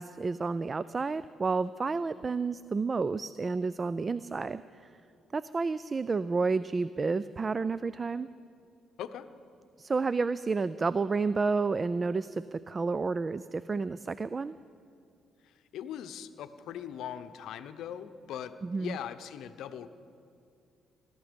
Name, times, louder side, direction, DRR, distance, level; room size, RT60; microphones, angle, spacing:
voice 1, 0.0-4.6 5.3-8.3 9.8-14.6 18.6-19.0, right 4 dB, 30° right, 16 dB, 0.3 m, -30 dB
voice 2, 15.4-19.9, left 9 dB, 80° left, 11 dB, 0.7 m, -40 dB
20.5 x 12.5 x 5.2 m, 2.4 s
cardioid pair, 90°, 0 cm